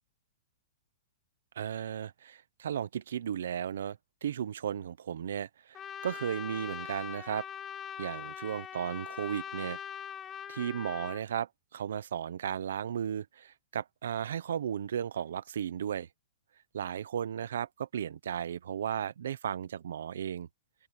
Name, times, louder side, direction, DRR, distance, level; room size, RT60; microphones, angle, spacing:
voice 1, 1.6-7.5 8.0-9.8 10.5-16.1 16.7-20.5, right 9 dB, 80° right, 0.9 m, -35 dB
Trumpet, 5.7-11.2, left 8 dB, 15° left, 0.9 m, -42 dB
open air
hypercardioid pair, 170°, 0 cm